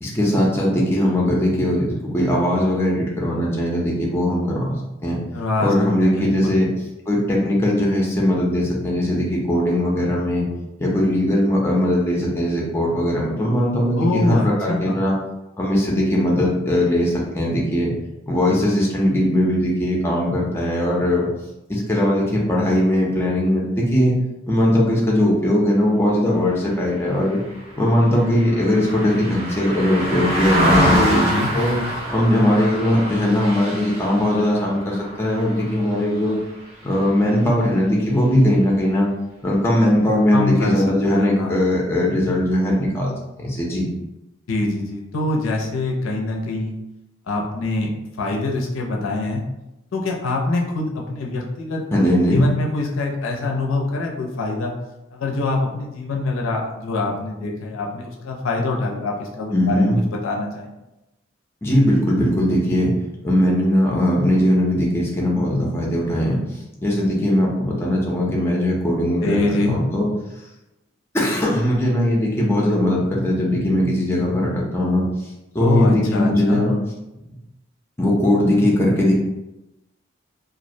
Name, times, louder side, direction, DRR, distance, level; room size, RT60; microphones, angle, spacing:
voice 1, 0.0-4.8 5.0-5.2 5.6-6.7 7.1-10.5 10.8-15.1 15.6-17.9 18.3-21.3 21.7-24.2 24.5-27.4 27.8-31.3 31.5-31.8 32.1-36.4 36.8-39.1 39.4-43.1 43.4-43.9 51.9-52.5 59.5-60.0 61.6-62.9 63.2-66.4 66.8-70.1 71.1-75.1 75.5-76.8 78.0-79.1, left 1 dB, 10° left, -3 dB, 0.4 m, -19 dB
voice 2, 5.3-5.7 6.0-6.6 14.0-15.0 30.9-31.5 40.3-40.8 41.1-41.6 44.5-46.7 47.3-47.9 48.2-49.4 49.9-51.8 52.3-54.7 55.1-60.7 69.2-69.8 75.6-76.6, left 2 dB, 70° left, 0 dB, 0.4 m, -24 dB
Car passing by, 27.0-36.6 37.0-37.2, equal, 30° right, 0.6 m, -26 dB
2.3 x 2.1 x 2.6 m, 0.95 s
head